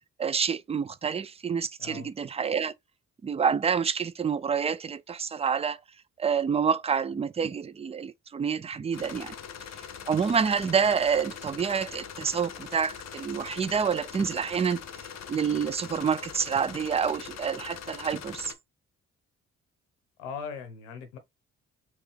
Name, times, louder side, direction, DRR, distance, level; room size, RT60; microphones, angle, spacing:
voice 1, 0.0-2.7 3.2-5.8 6.2-9.3 10.1-14.8 15.3-18.5, right 6 dB, 20° right, 0.4 m, -28 dB
sound 1, 8.9-18.5, left 8 dB, 45° left, 0.7 m, -42 dB
voice 2, 20.2-21.2, left 6 dB, 90° left, 0.8 m, -39 dB
4.5 x 2.4 x 3.2 m
hypercardioid pair, 40°, 36 cm